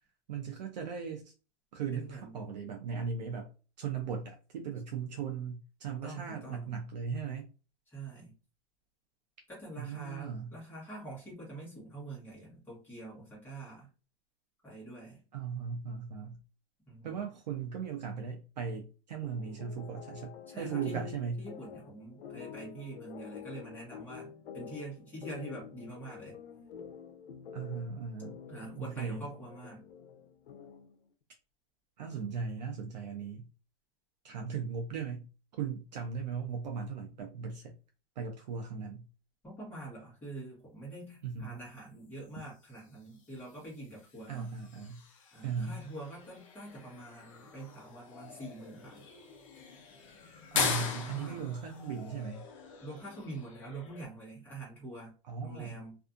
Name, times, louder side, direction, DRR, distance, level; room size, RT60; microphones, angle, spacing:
voice 1, 0.3-1.3 1.7-3.5 3.8-7.5 9.8-10.5 15.3-16.4 17.0-21.5 27.5-28.4 28.8-29.3 32.0-33.5 34.2-35.3 35.6-37.7 38.2-39.1 41.2-41.6 44.3-45.0 45.4-45.8 50.5-52.5 55.2-55.8, right 6 dB, 45° right, 0.5 m, -38 dB
voice 2, 1.9-2.4 6.0-6.8 7.9-8.3 9.5-13.9 14.6-15.2 16.9-17.1 20.5-21.0 21.4-26.4 28.5-29.8 39.4-44.5 45.3-49.0 51.0-51.4 52.8-55.1 55.4-56.0, right 2 dB, 5° left, 1.0 m, -45 dB
sound 1, 19.2-31.0, left 8 dB, 80° left, 0.6 m, -48 dB
sound 2, 42.1-54.0, left 5 dB, 35° left, 0.4 m, -41 dB
2.5 x 2.4 x 2.4 m
supercardioid pair, 170°, 31 cm